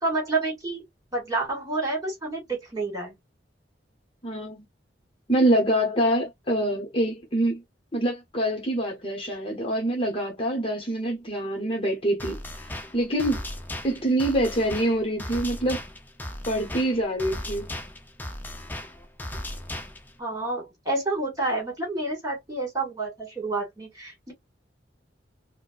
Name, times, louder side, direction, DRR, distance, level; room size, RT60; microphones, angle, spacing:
voice 1, 0.0-0.8 1.1-3.2 20.2-24.3, right 2 dB, 20° right, 2.0 m, -29 dB
voice 2, 4.2-4.6 5.3-7.6 7.9-12.4 12.9-13.4 13.8-15.8 16.5-17.7, right 1 dB, 30° left, 1.0 m, -25 dB
sound 1, 12.2-20.2, left 1 dB, 10° left, 0.6 m, -37 dB
4.4 x 2.1 x 2.4 m
head